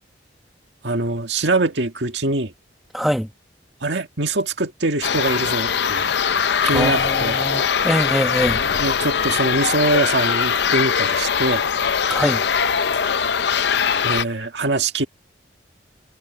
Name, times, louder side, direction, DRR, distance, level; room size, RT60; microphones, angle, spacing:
voice 1, 0.8-2.5 3.8-6.1 6.6-7.4 8.8-11.6 14.0-15.0, right 2 dB, 75° right, 2.0 m, -23 dB
voice 2, 2.9-3.3 6.7-8.7 12.1-12.4, equal, ahead, 1.2 m, -23 dB
sound 1, 5.0-14.3, left 7 dB, 65° left, 0.6 m, -21 dB
head